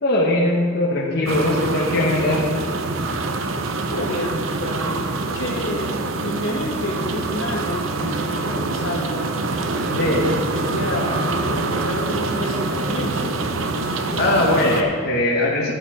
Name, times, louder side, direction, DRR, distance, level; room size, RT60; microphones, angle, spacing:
voice 1, 0.0-2.4 10.0-10.3 14.2-15.7, left 1 dB, 50° left, -3 dB, 1.2 m, -20 dB
sound 1, 1.3-14.8, right 3 dB, 75° right, 0.8 m, -25 dB
voice 2, 3.9-5.0 5.3-9.3 9.8-13.4, left 1 dB, 75° left, -1 dB, 1.9 m, -29 dB
12.5 x 8.0 x 4.9 m, 2.1 s
head